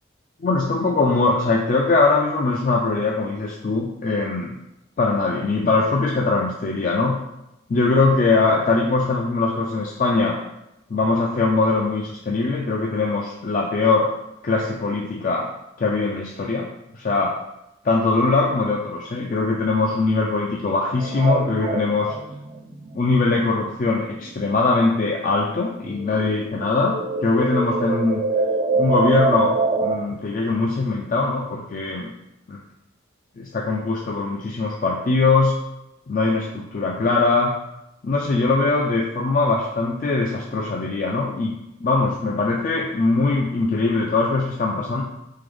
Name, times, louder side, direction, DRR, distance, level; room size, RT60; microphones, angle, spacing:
voice 1, 0.4-4.6 5.0-7.2 7.7-10.4 10.9-14.1 14.4-15.5 15.8-16.7 16.9-17.4 17.8-22.1 22.9-28.2 28.8-32.1 32.5-32.6 33.4-35.6 36.1-37.5 38.0-45.0, left 3 dB, 40° left, -1 dB, 0.4 m, -21 dB
sound 1, 21.0-25.1 25.4-30.0, right 3 dB, 30° right, 0.3 m, -25 dB
3.7 x 3.4 x 3.4 m, 0.87 s
head